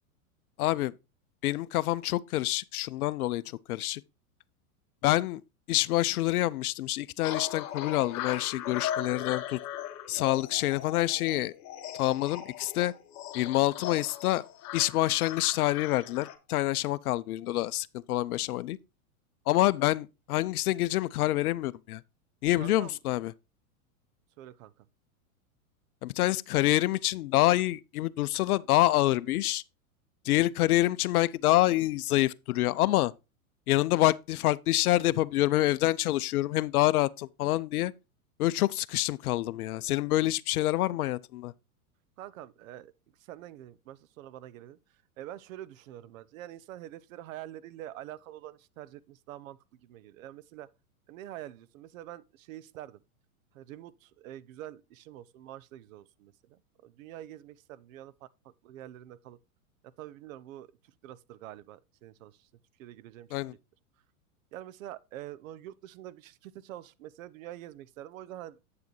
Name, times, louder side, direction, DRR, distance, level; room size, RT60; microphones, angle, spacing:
voice 1, 0.6-0.9 1.4-3.4 3.7-4.0 5.0-5.4 5.7-9.6 10.1-11.5 12.0-12.9 13.3-14.4 14.7-18.8 19.5-22.0 22.4-23.3 26.0-29.6 30.3-33.1 33.7-37.9 38.4-41.5 63.3-63.5, left 16 dB, 80° left, 0.6 m, -27 dB
sound 1, 7.2-16.4, left 11 dB, 40° left, 1.4 m, -38 dB
voice 2, 22.6-23.0 24.4-24.7 42.2-42.9 43.2-44.8 45.2-50.7 51.1-53.0 53.5-59.4 60.0-62.5 62.8-63.4 64.5-68.6, right 13 dB, 65° right, 0.7 m, -46 dB
8.5 x 6.9 x 3.1 m
hypercardioid pair, 120°, 44 cm